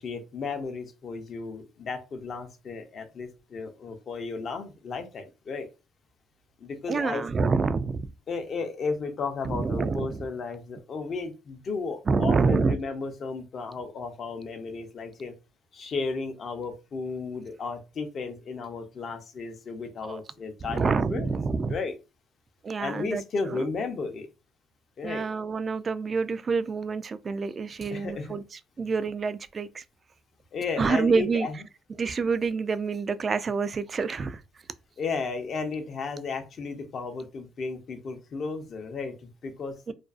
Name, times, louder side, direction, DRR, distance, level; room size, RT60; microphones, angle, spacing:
voice 1, 0.0-5.7 6.6-7.2 8.3-15.3 15.7-21.3 21.7-21.9 22.8-24.3 25.0-25.2 27.9-28.3 30.5-31.6 35.0-39.8, left 4 dB, 50° left, 0.6 m, -34 dB
voice 2, 6.9-8.1 9.4-10.3 12.1-12.8 20.0-20.2 20.6-21.7 22.6-23.2 23.5-23.6 25.0-28.4 28.8-29.8 30.8-31.5 32.0-34.4 39.9-40.0, right 4 dB, 35° right, 0.3 m, -27 dB
2.4 x 2.2 x 2.4 m
supercardioid pair, 85°, 0 cm